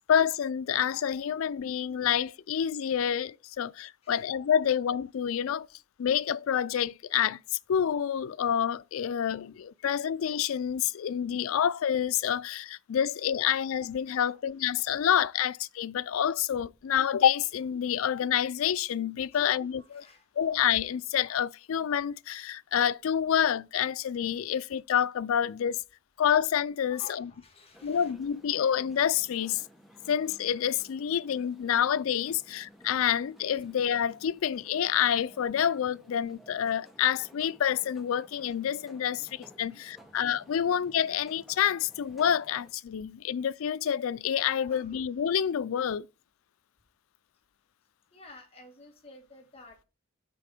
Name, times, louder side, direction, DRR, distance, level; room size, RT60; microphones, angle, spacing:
voice 1, 0.1-5.7 6.0-20.1 20.4-25.8 26.2-27.3 27.8-29.6 30.1-46.1, left 9 dB, 85° left, 0.4 m, -28 dB
voice 2, 19.3-20.3 26.9-28.1 29.4-29.5 30.0-30.1 39.7-40.1 40.6-40.7 44.6-44.9 48.1-49.8, left 3 dB, 30° left, 1.7 m, -53 dB
sound 1, 27.7-42.7, equal, ahead, 0.9 m, -56 dB
6.2 x 4.2 x 5.9 m
head